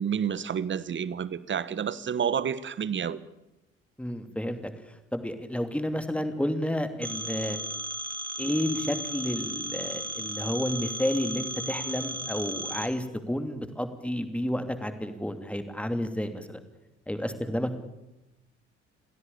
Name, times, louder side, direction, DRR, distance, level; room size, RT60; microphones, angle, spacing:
voice 1, 0.0-3.2, right 8 dB, 35° right, 1.3 m, -29 dB
voice 2, 4.0-4.7 5.1-7.6 8.4-16.6 17.1-17.9, left 1 dB, 5° left, 2.9 m, -31 dB
Telephone, 7.0-12.9, right 1 dB, 90° right, 1.5 m, -35 dB
28.0 x 16.0 x 8.6 m
figure-of-eight pair, 45°, 34 cm